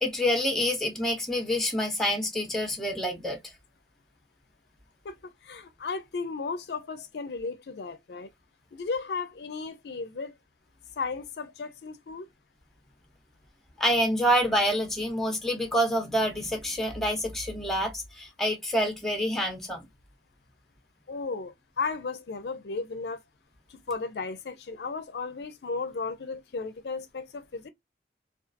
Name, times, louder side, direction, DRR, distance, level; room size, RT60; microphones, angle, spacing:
voice 1, 0.0-3.4 13.8-19.9, equal, ahead, 0.7 m, -27 dB
voice 2, 5.4-8.3 8.7-10.3 11.0-12.3 21.1-23.2 23.7-27.7, left 4 dB, 70° left, 0.4 m, -35 dB
2.5 x 2.3 x 2.4 m
head